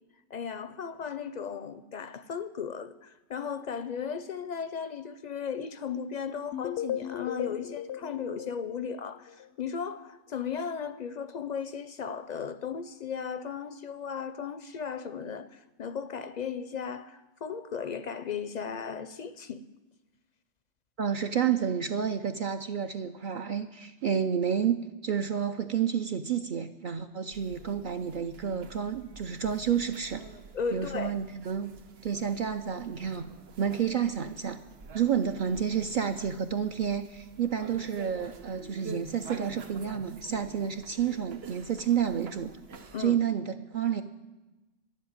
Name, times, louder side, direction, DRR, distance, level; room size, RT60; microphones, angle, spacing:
voice 1, 0.3-19.6 30.5-31.1 42.9-43.2, left 6 dB, 55° left, 0.5 m, -36 dB
sound 1, 6.5-9.5, left 11 dB, 85° left, 0.8 m, -36 dB
voice 2, 21.0-30.2 30.7-31.7 32.0-33.2 33.6-34.6 34.9-42.5 43.0-44.0, right 8 dB, 60° right, 0.6 m, -30 dB
sound 2, 27.3-43.1, right 4 dB, 75° right, 1.2 m, -48 dB
11.0 x 7.6 x 9.4 m
omnidirectional pair, 1.1 m